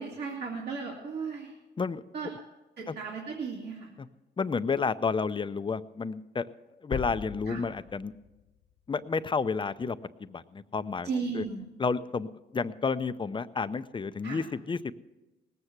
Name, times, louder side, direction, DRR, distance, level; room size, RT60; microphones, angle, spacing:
voice 1, 0.0-1.5 2.1-2.3 2.8-3.9 7.5-7.6 11.0-11.6 14.2-14.4, right 5 dB, 55° right, -2 dB, 2.3 m, -35 dB
voice 2, 4.4-6.5 6.8-8.1 8.9-11.1 11.3-11.4 11.8-14.9, left 5 dB, 25° left, 12 dB, 0.5 m, -31 dB
sound 1, 6.9-9.6, left 7 dB, 60° left, 1.1 m, -41 dB
19.0 x 8.1 x 5.9 m, 1.1 s
cardioid pair, 90°, 20 cm